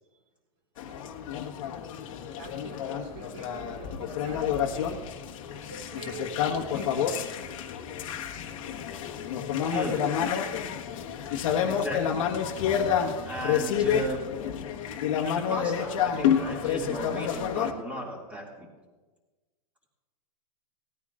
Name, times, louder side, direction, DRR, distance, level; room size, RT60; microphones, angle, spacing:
sound 1, 0.8-17.7, left 8 dB, 50° left, 1.4 m, -29 dB
voice 1, 2.4-5.0 5.5-7.5, right 3 dB, 55° right, -6 dB, 4.2 m, -44 dB
voice 2, 9.7-10.0 11.6-12.3 13.2-14.2 15.2-18.7, equal, 5° right, -1 dB, 2.3 m, -35 dB
19.0 x 14.0 x 2.5 m, 1.3 s
supercardioid pair, 165°, 21 cm